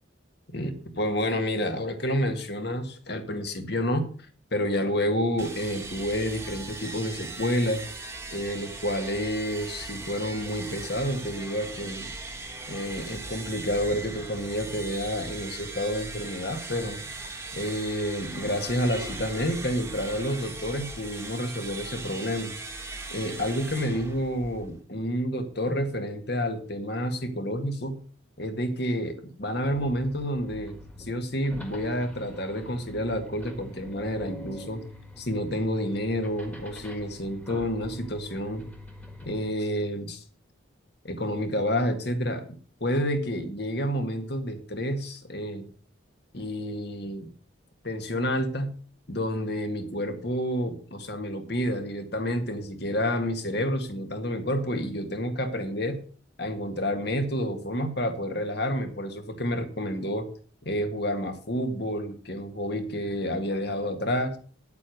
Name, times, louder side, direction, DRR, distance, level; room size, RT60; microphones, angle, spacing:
voice 1, 0.5-4.1 4.5-7.8 8.3-12.1 12.7-17.0 17.5-22.5 23.1-28.0 28.4-34.8 35.2-38.6 39.3-40.2 41.0-42.4 42.8-45.7 46.3-47.3 47.8-48.7 49.1-56.0 56.4-60.3 60.6-64.4, equal, 55° left, 6 dB, 1.9 m, -29 dB
sound 1, 5.4-24.8, right 3 dB, 15° right, 1.3 m, -39 dB
sound 2, 29.6-39.5, left 1 dB, 5° left, 1.7 m, -45 dB
9.6 x 8.2 x 6.4 m, 0.43 s
head